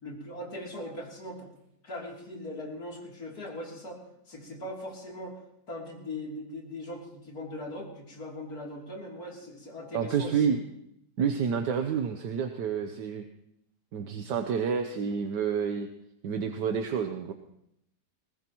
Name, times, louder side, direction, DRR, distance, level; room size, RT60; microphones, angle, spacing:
voice 1, 0.0-1.5 1.8-4.0 4.3-5.3 5.7-10.6, left 1 dB, 60° left, -2 dB, 3.6 m, -40 dB
voice 2, 9.9-10.6 11.2-13.2 13.9-15.9 16.2-17.3, right 7 dB, 75° right, 6 dB, 1.5 m, -29 dB
20.5 x 19.5 x 3.0 m, 0.78 s
omnidirectional pair, 1.8 m